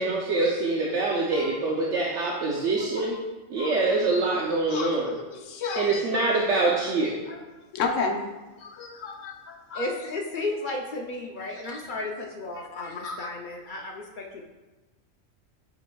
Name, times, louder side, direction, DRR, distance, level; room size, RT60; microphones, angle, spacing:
voice 1, 0.0-3.2 3.5-5.1 5.8-7.2, right 3 dB, 70° right, -2 dB, 1.0 m, -25 dB
voice 2, 2.8-3.1 3.6-3.8 4.7-6.4 7.3-7.4 7.7-8.2 8.6-9.9 11.4-11.5 12.6-12.9, left 4 dB, 75° left, 3 dB, 1.1 m, -33 dB
voice 3, 9.7-14.4, left 2 dB, 55° left, 1 dB, 0.6 m, -33 dB
8.1 x 5.1 x 2.3 m, 1.2 s
omnidirectional pair, 1.3 m